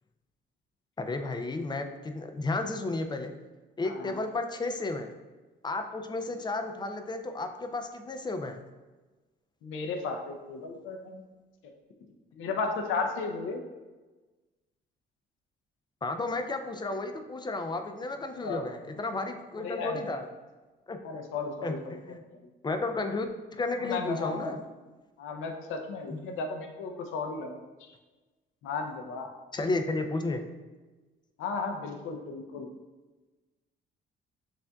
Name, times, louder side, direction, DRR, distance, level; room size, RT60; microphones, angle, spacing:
voice 1, 1.0-3.3 3.8-5.1 5.6-8.6 16.0-20.3 20.9-21.0 21.6-22.2 22.6-24.6 26.1-26.2 29.5-30.4, left 2 dB, 20° left, 6 dB, 0.4 m, -33 dB
voice 2, 3.8-4.2 9.6-11.3 11.6-11.7 12.3-13.6 18.4-18.7 19.6-20.1 21.0-22.0 22.3-22.5 23.8-24.6 25.2-27.9 28.6-29.3 31.4-32.7, left 4 dB, 85° left, 4 dB, 0.5 m, -35 dB
6.9 x 2.5 x 2.3 m, 1.2 s
cardioid pair, 90°, 20 cm